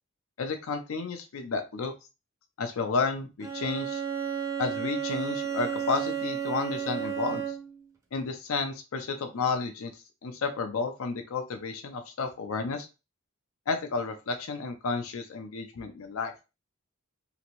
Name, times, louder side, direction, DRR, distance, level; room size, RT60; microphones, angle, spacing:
voice 1, 0.4-1.9 2.6-4.0 4.6-7.5 8.1-9.9 10.2-12.9 13.7-16.3, left 4 dB, 75° left, 6 dB, 0.5 m, -31 dB
Bowed string instrument, 3.4-7.8, right 8 dB, 15° right, 0.5 m, -32 dB
2.9 x 2.5 x 2.9 m, 0.29 s
head